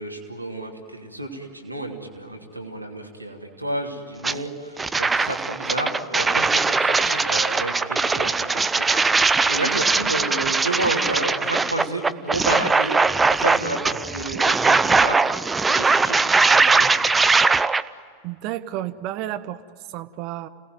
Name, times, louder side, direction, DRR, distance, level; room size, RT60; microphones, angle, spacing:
voice 1, 0.0-8.7 9.0-9.2 9.5-13.0 13.3-15.3 15.7-16.9, right 2 dB, 85° right, 2 dB, 2.9 m, -31 dB
sound 1, 4.2-4.4 4.8-17.8, right 4 dB, 10° right, 0.6 m, -20 dB
Wind instrument woodwind instrument, 5.6-8.6 8.9-12.2, right 2 dB, 90° left, 1.7 m, -41 dB
voice 2, 18.2-20.5, right 13 dB, 40° right, 14 dB, 1.1 m, -31 dB
29.0 x 18.5 x 9.4 m, 2.4 s
figure-of-eight pair, 90°, 0 cm